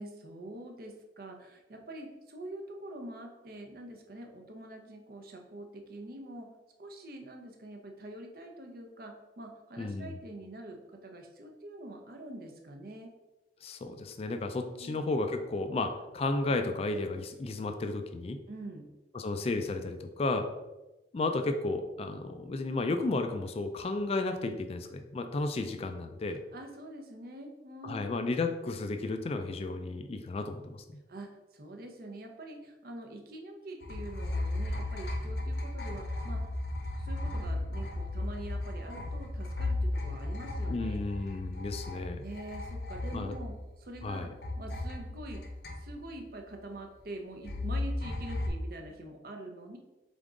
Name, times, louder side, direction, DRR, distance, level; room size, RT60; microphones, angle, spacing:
voice 1, 0.0-6.5 6.8-13.1 14.6-15.0 18.5-18.9 26.5-28.4 31.1-36.4 36.9-41.0 42.2-44.3 44.6-45.4 45.8-49.8, right 1 dB, 55° right, 3 dB, 0.7 m, -45 dB
voice 2, 9.8-10.1 13.6-18.4 19.1-20.5 21.1-26.4 27.8-31.0 40.7-42.2 43.1-43.3 44.0-44.3, left 2 dB, 35° left, 7 dB, 0.3 m, -33 dB
sound 1, 33.8-44.1 44.4-46.2 47.4-48.5, left 2 dB, 60° left, 0.8 m, -35 dB
3.8 x 3.6 x 3.7 m, 1.0 s
head